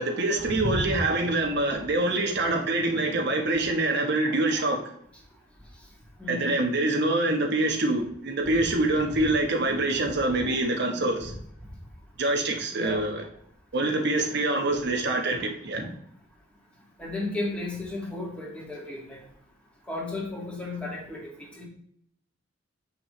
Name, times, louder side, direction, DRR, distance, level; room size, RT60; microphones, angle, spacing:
voice 1, 0.0-4.9 6.3-11.3 12.2-13.3 13.7-15.9, right 2 dB, 60° right, 1.1 m, -25 dB
voice 2, 6.2-6.6 12.7-13.0 17.0-19.2 19.9-21.7, left 2 dB, 5° left, 2.0 m, -34 dB
7.6 x 5.9 x 3.2 m
head